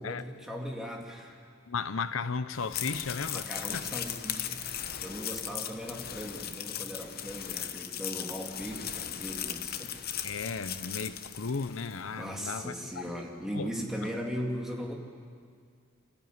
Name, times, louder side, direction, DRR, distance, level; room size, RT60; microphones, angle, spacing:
voice 1, 0.0-1.5 3.3-9.9 12.1-14.9, equal, ahead, -1 dB, 2.7 m, -38 dB
voice 2, 1.7-3.5 3.7-4.0 10.2-13.0 13.5-13.7 14.0-14.1, left 4 dB, 90° left, 13 dB, 0.8 m, -35 dB
sound 1, 2.5-12.1, left 10 dB, 50° left, 0.9 m, -38 dB
29.0 x 13.5 x 9.6 m, 2.1 s
head